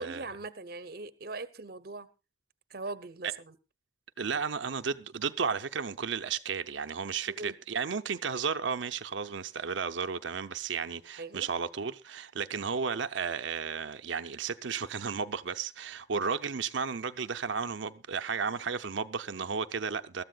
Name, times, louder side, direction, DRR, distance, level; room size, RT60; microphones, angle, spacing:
voice 1, 0.0-2.1 2.7-3.5 7.3-7.5 11.2-11.5, right 3 dB, 55° right, 0.8 m, -40 dB
voice 2, 4.2-20.2, right 6 dB, 85° right, 0.6 m, -33 dB
22.0 x 13.5 x 2.4 m
head